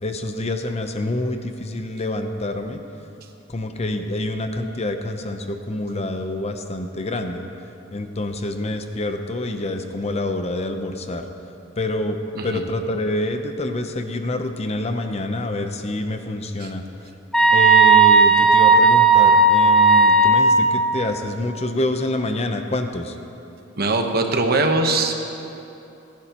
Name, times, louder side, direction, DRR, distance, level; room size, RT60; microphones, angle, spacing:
voice 1, 0.0-2.8 3.5-7.4 7.9-11.2 11.8-12.2 12.4-16.8 17.5-23.1, left 1 dB, 35° left, 6 dB, 0.8 m, -27 dB
sound 1, 17.3-20.6, right 3 dB, 5° left, 0.7 m, -13 dB
voice 2, 23.8-25.2, right 2 dB, 55° right, 4 dB, 1.1 m, -21 dB
28.0 x 10.5 x 3.0 m, 2.8 s
head